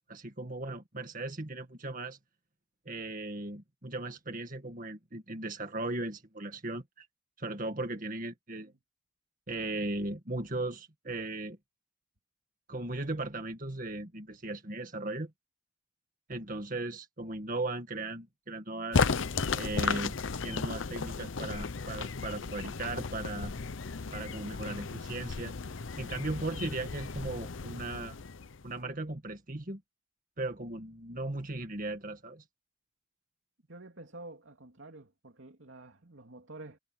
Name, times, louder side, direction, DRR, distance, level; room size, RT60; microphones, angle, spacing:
voice 1, 0.1-2.2 2.9-7.1 7.4-8.7 9.5-11.6 12.7-15.3 16.3-19.1 19.5-20.2 20.4-23.5 24.1-25.5 26.0-28.2 28.6-29.8 30.4-32.4, right 2 dB, 45° right, 2.0 m, -37 dB
sound 1, 18.9-28.7, left 4 dB, 80° left, 0.8 m, -34 dB
voice 2, 33.7-36.8, right 2 dB, 75° right, 2.8 m, -49 dB
head